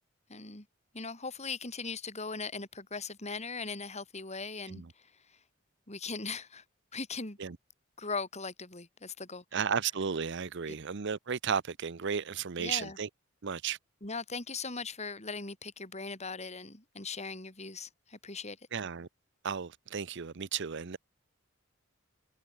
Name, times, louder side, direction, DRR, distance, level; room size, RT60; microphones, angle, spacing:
voice 1, 0.3-0.7 0.9-4.8 5.9-6.6 6.9-7.4 8.0-9.4 12.6-13.0 14.0-18.6, left 4 dB, 35° left, 4.3 m, -39 dB
voice 2, 9.5-13.1 13.4-13.8 18.7-19.1 19.4-21.0, right 6 dB, 60° right, 0.7 m, -34 dB
head